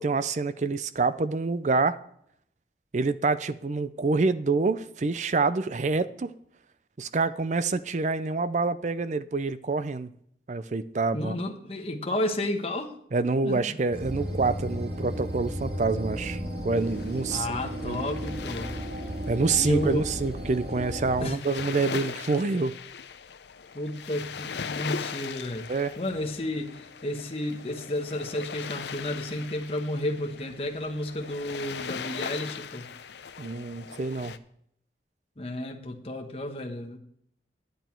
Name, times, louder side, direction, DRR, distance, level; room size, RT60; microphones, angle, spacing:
voice 1, 0.0-2.0 2.9-6.3 7.0-10.1 10.5-11.3 13.1-17.6 17.8-18.0 19.3-22.8 25.7-26.0 33.4-34.3, right 3 dB, 40° right, 0.5 m, -27 dB
voice 2, 11.1-12.9 13.4-13.8 17.3-18.7 19.6-20.1 21.2-21.4 23.7-25.7 26.0-32.9 35.4-37.0, left 1 dB, 35° left, 1.1 m, -32 dB
sound 1, 13.9-21.2, equal, 60° right, 2.2 m, -34 dB
sound 2, 16.7-34.4, left 6 dB, 75° left, 0.6 m, -40 dB
10.0 x 9.3 x 4.5 m
head